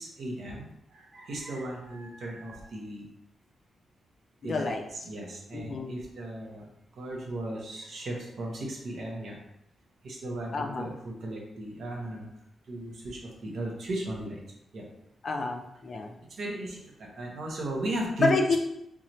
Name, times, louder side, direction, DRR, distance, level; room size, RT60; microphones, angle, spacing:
voice 1, 0.0-3.1 4.4-6.7 6.9-9.4 10.0-12.3 12.7-14.4 14.7-14.8 16.3-18.3, right 1 dB, 55° right, -2 dB, 0.9 m, -36 dB
voice 2, 4.4-4.8 5.5-5.9 10.5-10.9 15.2-16.1 18.2-18.6, left 3 dB, 40° left, 3 dB, 0.4 m, -28 dB
3.8 x 2.8 x 3.0 m, 0.80 s
wide cardioid pair, 180°, 0 cm